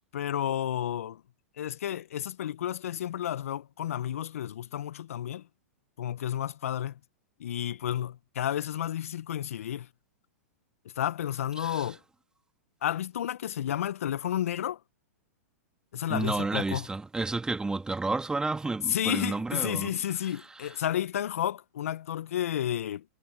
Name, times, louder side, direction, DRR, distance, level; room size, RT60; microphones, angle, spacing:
voice 1, 0.1-1.2 1.6-5.4 6.0-6.9 7.4-9.9 11.0-12.0 12.8-14.8 15.9-16.9 18.9-23.0, left 11 dB, 70° left, 1.3 m, -31 dB
voice 2, 11.6-11.9 16.1-19.9 20.3-20.8, right 3 dB, 10° right, 2.7 m, -31 dB
hypercardioid pair, 105°, 8 cm